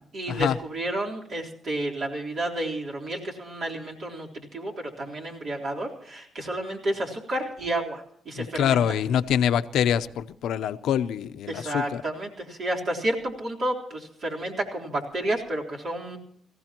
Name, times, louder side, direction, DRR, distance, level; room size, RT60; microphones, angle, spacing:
voice 1, 0.1-9.0 11.5-16.2, right 1 dB, 55° right, -2 dB, 3.8 m, -31 dB
voice 2, 8.4-12.0, left 9 dB, 80° left, 10 dB, 0.8 m, -25 dB
26.5 x 15.5 x 3.0 m, 0.65 s
cardioid pair, 90°, 0 cm